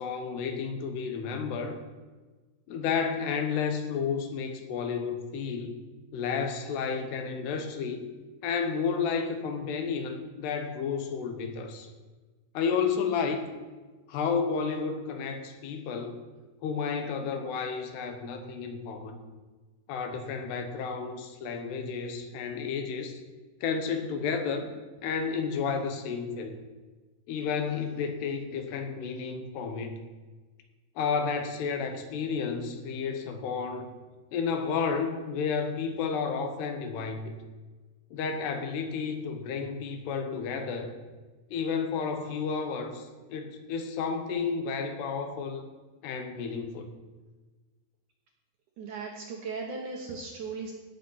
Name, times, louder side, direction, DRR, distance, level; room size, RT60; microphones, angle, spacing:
voice 1, 0.0-1.8 2.7-5.8 6.1-8.1 8.4-11.9 12.5-13.5 14.1-16.2 16.6-19.2 19.9-23.2 23.6-24.7 25.0-26.6 27.3-30.0 31.0-33.9 34.3-37.3 38.1-40.9 41.5-45.6 46.0-46.9, left 5 dB, 80° left, 7 dB, 3.2 m, -31 dB
voice 2, 48.8-50.7, right 4 dB, 65° right, 1 dB, 2.1 m, -37 dB
17.5 x 6.7 x 5.5 m, 1.3 s
omnidirectional pair, 4.8 m